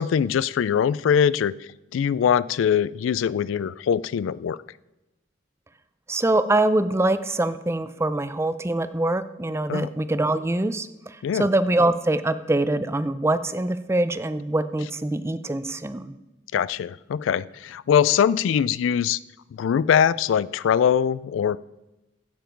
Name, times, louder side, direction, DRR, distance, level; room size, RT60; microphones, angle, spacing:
voice 1, 0.0-1.5 1.9-4.6 9.7-9.9 11.2-11.5 16.5-19.2 19.5-21.6, left 8 dB, 80° left, 20 dB, 0.3 m, -22 dB
voice 2, 6.1-16.2, right 2 dB, 15° right, 13 dB, 0.4 m, -24 dB
15.5 x 7.2 x 4.5 m, 0.98 s
head